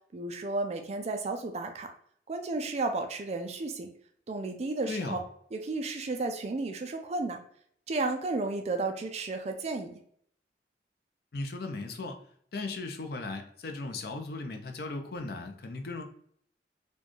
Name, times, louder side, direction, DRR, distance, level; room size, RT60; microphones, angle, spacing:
voice 1, 0.1-1.9 2.3-3.9 4.3-5.2 5.5-7.4 7.9-9.9, right 3 dB, 40° right, 5 dB, 0.4 m, -33 dB
voice 2, 4.9-5.2 11.3-12.2 12.5-16.0, left 3 dB, 60° left, 6 dB, 0.5 m, -37 dB
4.2 x 2.3 x 3.0 m, 0.64 s
head